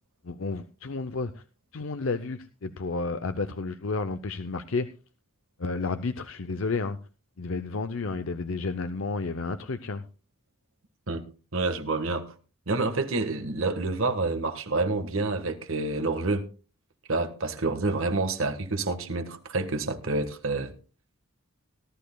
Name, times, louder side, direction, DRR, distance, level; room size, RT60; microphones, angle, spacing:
voice 1, 0.2-1.4 1.7-4.9 5.6-7.0 7.4-10.0, left 3 dB, 70° left, 0.7 m, -31 dB
voice 2, 11.5-12.3 12.7-16.5 17.1-20.7, right 3 dB, 70° right, 1.6 m, -28 dB
19.0 x 12.5 x 2.3 m
head